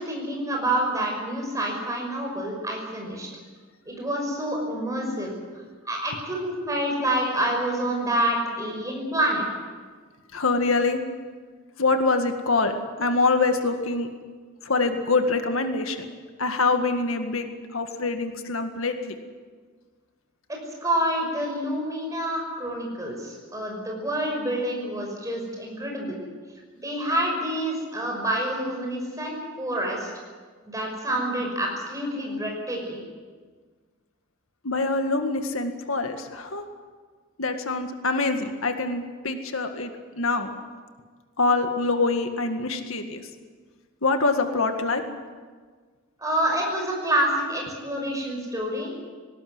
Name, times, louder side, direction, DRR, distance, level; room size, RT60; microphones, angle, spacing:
voice 1, 0.0-3.3 3.9-5.3 5.9-9.4 20.5-26.2 26.8-30.1 30.7-33.0 46.2-48.9, right 1 dB, 15° right, 0 dB, 5.8 m, -27 dB
voice 2, 10.3-11.0 11.8-12.7 13.0-14.1 14.6-16.1 16.4-19.1 34.6-36.6 37.4-40.5 41.4-43.2 44.0-45.0, left 3 dB, 80° left, 6 dB, 1.9 m, -25 dB
19.0 x 18.5 x 9.6 m, 1.5 s
head